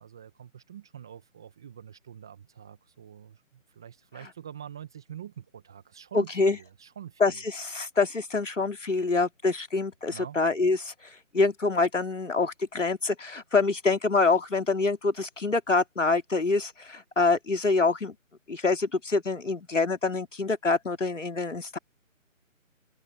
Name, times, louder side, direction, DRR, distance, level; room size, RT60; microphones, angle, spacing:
voice 1, 0.0-7.4 10.1-10.4, right 9 dB, 5° right, 0.8 m, -45 dB
voice 2, 6.1-6.6 7.2-10.9 11.3-18.1 18.5-21.8, left 3 dB, 65° left, 3.1 m, -26 dB
open air
figure-of-eight pair, 150°, 40 cm